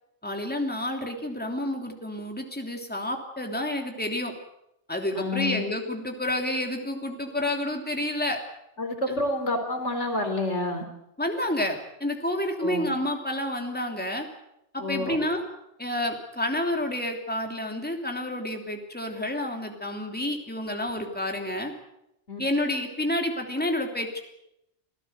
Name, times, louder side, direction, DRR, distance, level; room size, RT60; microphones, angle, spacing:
voice 1, 0.2-4.3 4.9-8.4 9.1-9.2 11.2-14.3 14.7-15.4 15.8-21.7 22.4-24.2, left 1 dB, 10° left, 3 dB, 3.1 m, -29 dB
voice 2, 5.2-5.6 8.8-10.9 12.6-12.9 14.8-15.2 22.3-22.4, left 2 dB, 85° left, 5 dB, 4.4 m, -28 dB
27.5 x 16.0 x 8.1 m, 0.82 s
omnidirectional pair, 1.2 m